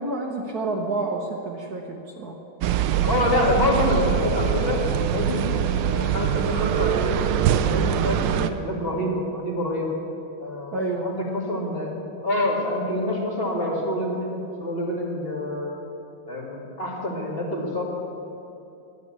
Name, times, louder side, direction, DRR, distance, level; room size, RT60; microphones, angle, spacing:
voice 1, 0.0-2.4 10.7-11.2, right 2 dB, 55° right, 1 dB, 1.4 m, -29 dB
sound 1, 2.6-8.5, right 9 dB, 70° right, 1.2 m, -23 dB
voice 2, 3.0-5.5 5.9-7.3 7.7-10.0 10.4-11.9 12.2-15.7 16.3-17.8, left 1 dB, 30° left, -3 dB, 2.2 m, -26 dB
12.0 x 9.2 x 8.3 m, 2.8 s
omnidirectional pair, 2.3 m